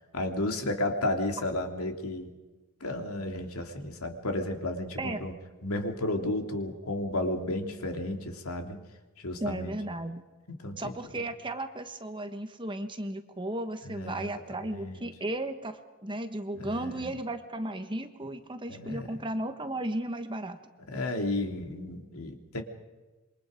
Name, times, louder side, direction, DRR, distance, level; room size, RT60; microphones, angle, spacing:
voice 1, 0.1-2.3 2.8-5.3 5.6-8.8 9.2-9.7 10.6-10.9 13.8-14.4 14.7-15.1 16.6-17.1 18.7-19.2 20.9-22.6, left 1 dB, 75° left, 4 dB, 2.9 m, -33 dB
voice 2, 9.4-10.2 10.8-20.6, right 1 dB, 20° right, 8 dB, 1.3 m, -35 dB
27.0 x 24.0 x 5.1 m, 1.2 s
head